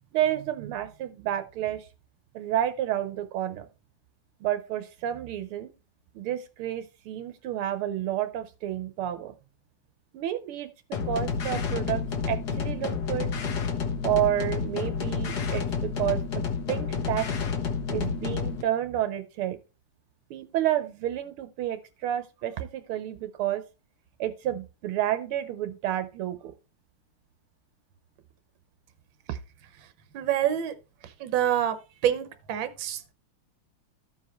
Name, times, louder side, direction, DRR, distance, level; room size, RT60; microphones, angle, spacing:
voice 1, 0.1-1.9 2.3-3.7 4.4-5.7 6.2-9.3 10.1-13.3 14.0-17.3 17.9-19.6 20.3-23.6 24.2-26.5, right 12 dB, 85° right, 1.7 m, -30 dB
sound 1, 10.9-18.6, left 5 dB, 55° left, 1.5 m, -30 dB
voice 2, 30.1-30.7 31.0-31.8 32.0-33.1, right 10 dB, 65° right, 1.6 m, -27 dB
14.5 x 4.9 x 3.0 m
omnidirectional pair, 2.3 m